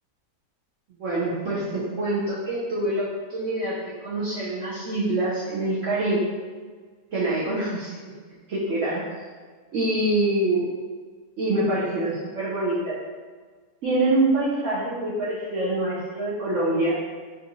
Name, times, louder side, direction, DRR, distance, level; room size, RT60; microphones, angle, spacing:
voice 1, 1.0-3.0 3.3-6.3 7.1-8.0 8.5-9.0 9.7-10.6 11.4-13.0 13.8-17.0, right 2 dB, 65° right, -8 dB, 0.8 m, -25 dB
3.6 x 2.8 x 2.6 m, 1.5 s
omnidirectional pair, 1.8 m